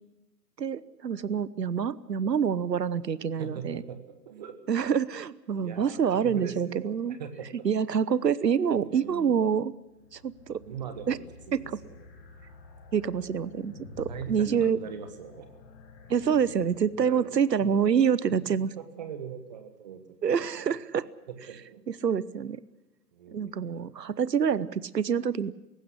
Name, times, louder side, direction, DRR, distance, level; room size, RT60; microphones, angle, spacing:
voice 1, 0.6-3.8 4.7-7.2 7.6-9.7 10.1-10.6 11.1-11.2 11.5-11.6 12.9-14.8 16.1-18.7 20.2-21.1 21.9-22.6 23.3-25.5, right 7 dB, 75° right, 19 dB, 1.0 m, -27 dB
voice 2, 3.4-4.6 5.6-7.7 8.8-9.5 10.6-11.2 11.5-12.1 14.1-15.5 16.9-17.3 17.6-20.7 21.3-21.8 23.1-24.0, right 7 dB, 25° right, 8 dB, 1.5 m, -41 dB
sound 1, 9.8-17.3, left 3 dB, 5° left, 0.9 m, -49 dB
18.5 x 16.0 x 10.0 m, 1.0 s
figure-of-eight pair, 145°, 50 cm